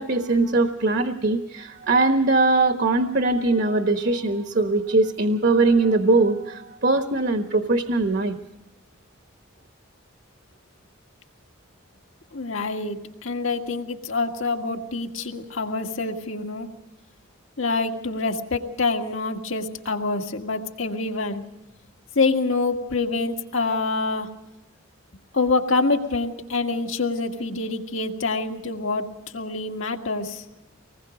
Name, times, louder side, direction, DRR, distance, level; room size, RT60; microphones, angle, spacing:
voice 1, 0.0-8.3, right 2 dB, 55° right, 6 dB, 1.2 m, -21 dB
voice 2, 12.3-16.7 17.6-21.4 22.2-24.3 25.3-29.1 29.3-30.4, left 3 dB, 75° left, 3 dB, 2.0 m, -26 dB
25.5 x 20.0 x 5.2 m, 0.96 s
head